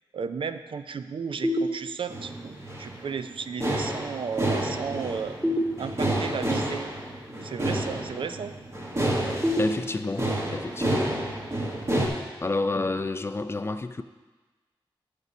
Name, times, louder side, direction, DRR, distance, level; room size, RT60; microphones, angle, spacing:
voice 1, 0.1-5.3 5.8-6.8 7.4-8.5, right 6 dB, 70° right, 10 dB, 0.4 m, -34 dB
sound 1, 1.4-2.4 5.4-6.4 9.4-10.4, equal, 10° right, 1.9 m, -29 dB
sound 2, 2.1-12.1, right 1 dB, 30° right, 1.7 m, -29 dB
voice 2, 9.6-11.2 12.4-14.0, left 3 dB, 30° left, 10 dB, 0.4 m, -29 dB
8.1 x 5.3 x 6.2 m, 1.3 s
wide cardioid pair, 105°, 9 cm